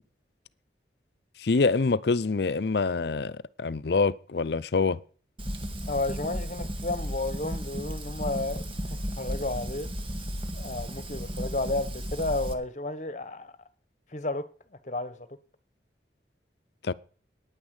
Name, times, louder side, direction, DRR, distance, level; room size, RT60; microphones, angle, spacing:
voice 1, 1.4-5.0 16.8-16.9, left 4 dB, 70° left, 0.6 m, -25 dB
Fire, 5.4-12.5, equal, 30° right, 1.3 m, -34 dB
voice 2, 5.8-9.9 10.5-13.5 14.1-15.3, left 2 dB, 40° left, 1.1 m, -32 dB
9.7 x 9.6 x 8.1 m
head